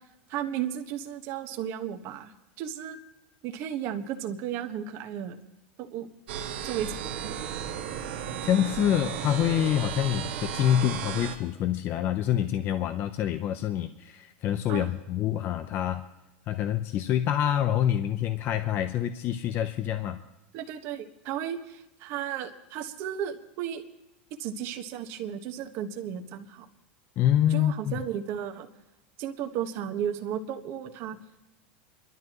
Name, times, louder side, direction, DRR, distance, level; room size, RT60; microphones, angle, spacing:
voice 1, 0.3-2.3 2.6-3.0 3.4-5.4 5.8-6.1 6.6-7.4 14.7-14.9 20.5-23.8 24.4-26.7 27.5-28.7 29.2-31.2, right 9 dB, 50° right, 6 dB, 1.4 m, -34 dB
sound 1, 6.3-11.4, right 8 dB, 80° right, 1.7 m, -34 dB
voice 2, 8.4-16.0 16.5-20.2 27.2-28.0, left 11 dB, 40° left, 9 dB, 0.7 m, -26 dB
28.5 x 12.0 x 3.1 m, 0.93 s
supercardioid pair, 125°, 6 cm